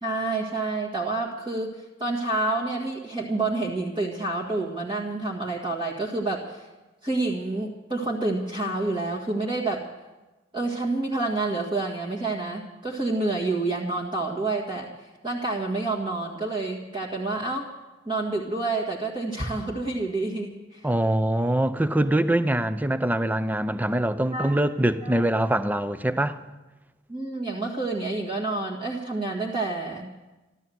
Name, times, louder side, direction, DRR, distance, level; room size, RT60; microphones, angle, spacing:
voice 1, 0.0-6.7 7.0-9.8 10.5-14.9 15.2-17.7 18.1-20.8 24.3-24.6 25.0-25.2 27.1-30.1, right 2 dB, 25° right, 1.8 m, -28 dB
voice 2, 20.8-26.4, right 1 dB, 10° right, 0.5 m, -23 dB
14.0 x 13.0 x 7.9 m
head